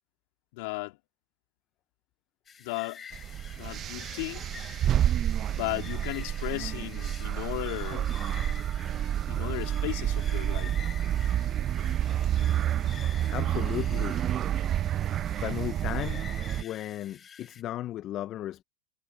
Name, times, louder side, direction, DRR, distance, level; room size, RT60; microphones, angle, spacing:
voice 1, 0.5-1.0 2.6-3.0 3.6-4.4 5.5-8.1 9.3-10.7, left 25 dB, 65° left, 2.6 m, -35 dB
sound 1, 2.5-17.6, left 7 dB, 25° left, 4.8 m, -49 dB
sound 2, 3.1-16.6, right 11 dB, 40° right, 0.5 m, -29 dB
voice 2, 13.3-14.2 15.4-16.3 16.6-18.6, left 13 dB, 45° left, 0.4 m, -35 dB
hypercardioid pair, 105°, 0 cm